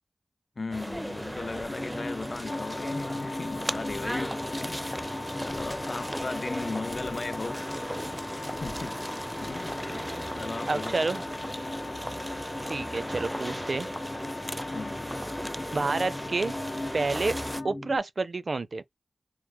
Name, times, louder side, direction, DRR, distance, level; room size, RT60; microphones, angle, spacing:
voice 1, 0.6-7.6 8.3-9.0 9.4-11.0 14.7-15.1, left 3 dB, 65° left, 0.4 m, -37 dB
sound 1, 0.7-17.6, equal, 5° right, 0.4 m, -36 dB
sound 2, 1.7-18.0, left 1 dB, 25° left, 0.7 m, -40 dB
Wind instrument woodwind instrument, 2.5-17.7, left 4 dB, 85° left, 0.9 m, -42 dB
voice 2, 10.7-11.2 12.7-13.9 15.7-16.5 16.9-17.4 17.6-18.8, right 3 dB, 70° right, 0.4 m, -29 dB
3.0 x 2.1 x 3.5 m
wide cardioid pair, 50°, 0 cm